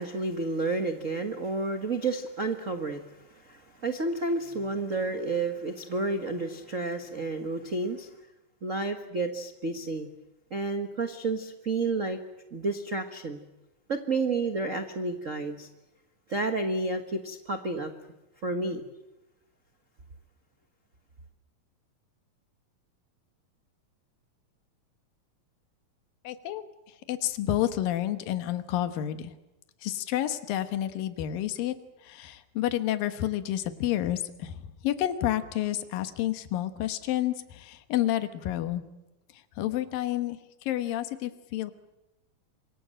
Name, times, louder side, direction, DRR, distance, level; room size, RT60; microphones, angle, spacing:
voice 1, 0.0-3.0 3.3-8.1 8.6-10.1 10.5-12.2 12.5-13.4 13.9-15.7 16.3-17.9 18.4-18.8, right 3 dB, 85° right, 6 dB, 0.7 m, -30 dB
voice 2, 26.2-26.6 27.1-29.3 29.8-31.7 32.0-38.8 39.6-41.7, left 13 dB, 80° left, 10 dB, 3.0 m, -30 dB
27.0 x 23.5 x 7.7 m, 0.97 s
omnidirectional pair, 4.0 m